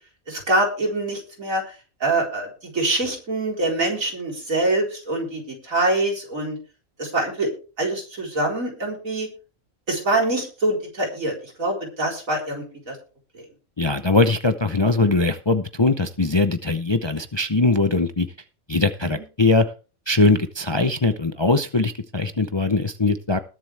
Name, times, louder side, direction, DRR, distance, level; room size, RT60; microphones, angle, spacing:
voice 1, 0.3-1.6 2.0-2.5 2.7-6.6 7.0-7.5 7.8-9.3 9.9-13.0 13.3-13.4, right 2 dB, 75° right, 0 dB, 4.6 m, -24 dB
voice 2, 13.8-18.3 18.7-19.7 20.1-23.4, left 3 dB, 25° left, 9 dB, 0.6 m, -21 dB
20.0 x 7.7 x 3.4 m, 0.35 s
omnidirectional pair, 1.4 m